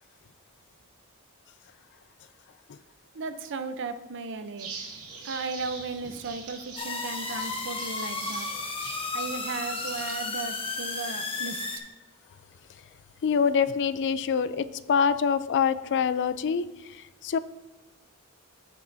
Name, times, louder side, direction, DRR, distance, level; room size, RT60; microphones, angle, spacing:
voice 1, 3.1-4.7 5.2-8.5 9.1-11.6, right 4 dB, 60° right, 9 dB, 0.6 m, -36 dB
sound 1, 4.6-10.2, right 4 dB, 80° right, 2.1 m, -43 dB
sound 2, 6.8-11.8, left 3 dB, 25° left, 0.9 m, -33 dB
voice 2, 13.2-17.4, left 6 dB, 55° left, 14 dB, 0.4 m, -25 dB
15.5 x 5.4 x 2.7 m, 1.1 s
head